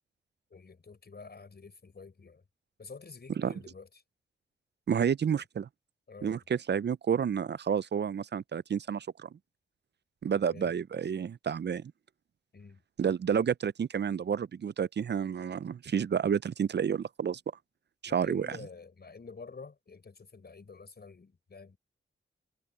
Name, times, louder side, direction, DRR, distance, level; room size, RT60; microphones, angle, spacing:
voice 1, 0.5-2.4 2.8-4.0 6.1-6.4 10.5-10.8 12.5-12.8 18.0-21.8, left 4 dB, 50° left, 5.1 m, -49 dB
voice 2, 4.9-5.7 6.2-9.3 10.2-11.9 13.0-17.4 18.0-18.6, right 7 dB, 55° right, 0.6 m, -30 dB
cardioid pair, 45°, 21 cm